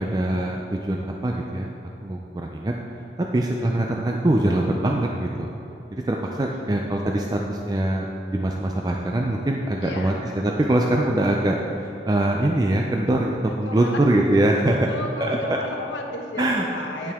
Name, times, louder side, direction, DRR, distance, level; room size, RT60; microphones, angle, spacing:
voice 1, 0.0-1.7 2.0-2.8 3.2-5.5 5.9-14.9 15.2-15.6 16.4-16.6 17.0-17.1, right 1 dB, 20° right, 0 dB, 0.4 m, -23 dB
voice 2, 9.8-10.2 13.5-14.4 14.9-17.1, left 2 dB, 90° left, 2 dB, 1.0 m, -34 dB
10.5 x 7.2 x 3.6 m, 2.9 s
head